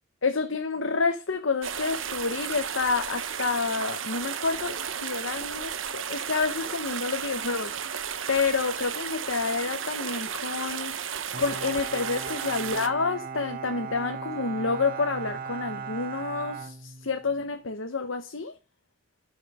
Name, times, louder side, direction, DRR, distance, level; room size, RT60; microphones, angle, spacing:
voice 1, 0.2-7.7 8.3-11.0 11.4-18.5, left 4 dB, 90° left, 1.0 m, -29 dB
sound 1, 1.6-12.9, right 8 dB, 85° right, 1.1 m, -34 dB
Bowed string instrument, 11.3-17.5, right 5 dB, 45° right, 0.7 m, -37 dB
10.5 x 5.9 x 5.0 m
head